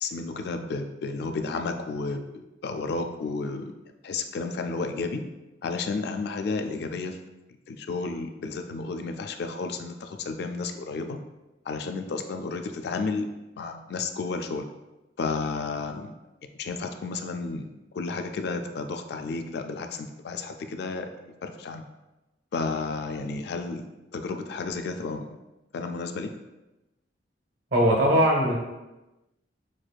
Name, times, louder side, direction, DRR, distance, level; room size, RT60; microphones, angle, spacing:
voice 1, 0.0-3.7 4.0-5.2 5.6-7.2 7.7-11.2 11.7-13.3 13.6-14.7 15.2-16.1 16.6-17.7 17.9-21.1 21.4-21.8 22.5-23.8 24.1-25.3 25.7-26.3, left 4 dB, 65° left, 6 dB, 0.3 m, -32 dB
voice 2, 27.7-28.6, equal, 70° right, -2 dB, 1.1 m, -20 dB
6.1 x 2.5 x 2.2 m, 1.0 s
head